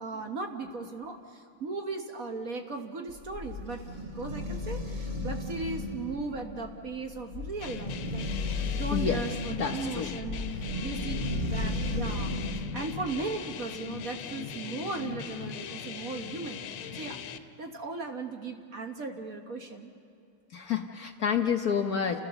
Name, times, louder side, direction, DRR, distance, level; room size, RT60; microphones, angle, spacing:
voice 1, 0.0-16.6 16.9-17.2 17.6-19.9, right 3 dB, 45° right, 4 dB, 1.5 m, -37 dB
sound 1, 3.1-12.8, left 2 dB, 30° right, 4.4 m, -34 dB
sound 2, 7.6-17.4, left 7 dB, 75° left, 1.6 m, -40 dB
voice 2, 9.6-10.1 20.5-22.2, left 7 dB, 60° left, 4 dB, 1.1 m, -29 dB
30.0 x 16.0 x 6.9 m, 2.6 s
omnidirectional pair, 2.3 m